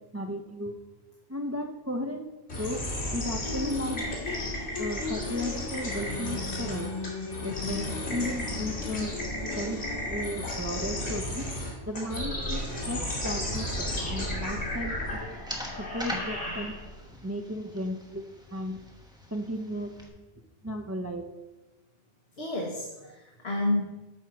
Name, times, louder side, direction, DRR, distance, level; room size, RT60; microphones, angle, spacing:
voice 1, 0.1-0.7 1.3-2.3 2.6-2.8 3.1-4.0 4.8-6.9 7.4-9.1 9.6-11.5 11.9-15.3 15.8-16.8 17.2-18.8 19.3-20.3 20.6-21.3, equal, 20° right, 4 dB, 0.4 m, -35 dB
sound 1, 2.5-17.0, left 1 dB, 85° left, 2.7 m, -34 dB
sound 2, 3.4-11.2, left 4 dB, 40° left, 0.8 m, -37 dB
sound 3, 14.3-20.1, equal, 5° right, 1.0 m, -43 dB
voice 2, 22.4-23.8, left 1 dB, 60° left, -1 dB, 1.4 m, -30 dB
9.4 x 4.5 x 6.1 m, 1.1 s
omnidirectional pair, 1.2 m